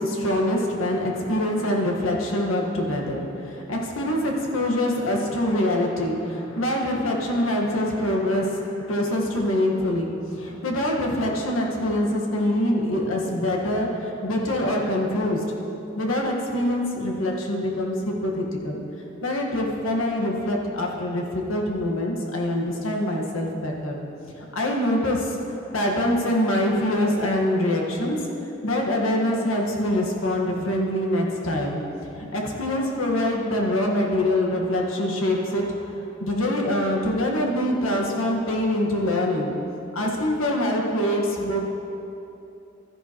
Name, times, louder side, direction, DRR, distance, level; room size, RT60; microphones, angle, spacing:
voice 1, 0.0-15.4 15.9-18.8 19.2-24.0 24.4-28.2 28.6-31.8 32.2-39.5 39.9-41.6, left 1 dB, 80° left, -1 dB, 1.5 m, -24 dB
13.5 x 11.0 x 3.0 m, 2.9 s
head